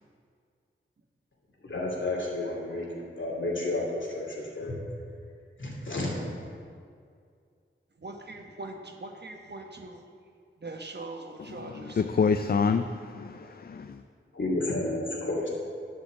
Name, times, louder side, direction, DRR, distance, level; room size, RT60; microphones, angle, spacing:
voice 1, 1.6-4.7 5.6-6.2 13.4-13.5 14.3-15.5, left 2 dB, 65° left, 2.5 m, -31 dB
voice 2, 2.4-2.9 8.0-10.0 10.6-12.2, right 2 dB, 55° right, 1.1 m, -42 dB
voice 3, 11.6-14.0, left 5 dB, 50° left, 0.4 m, -27 dB
10.0 x 5.2 x 7.3 m
wide cardioid pair, 50°, 21 cm